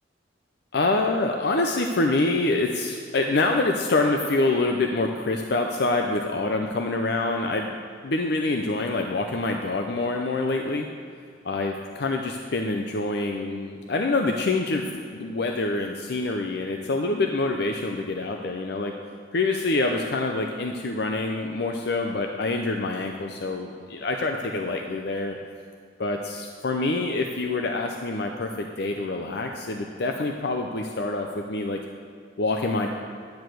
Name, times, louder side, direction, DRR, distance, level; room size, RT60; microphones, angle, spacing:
voice 1, 0.7-7.7 8.0-10.9 11.4-14.9 15.1-18.9 19.3-25.4 26.0-31.8 32.4-32.9, left 2 dB, 60° left, 3 dB, 0.6 m, -26 dB
10.5 x 4.8 x 7.7 m, 2.2 s
head